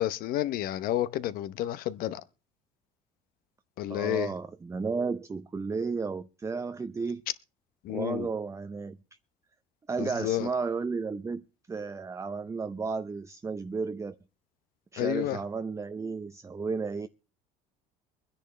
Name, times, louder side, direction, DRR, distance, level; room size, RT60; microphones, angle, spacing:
voice 1, 0.0-2.2 3.8-4.3 7.8-8.3 10.0-10.5 15.0-15.4, left 13 dB, 70° left, 0.9 m, -30 dB
voice 2, 3.9-7.2 7.9-9.0 9.9-11.4 11.7-14.2 14.9-17.1, right 4 dB, 20° right, 0.6 m, -33 dB
23.5 x 10.0 x 3.2 m
supercardioid pair, 95°, 16 cm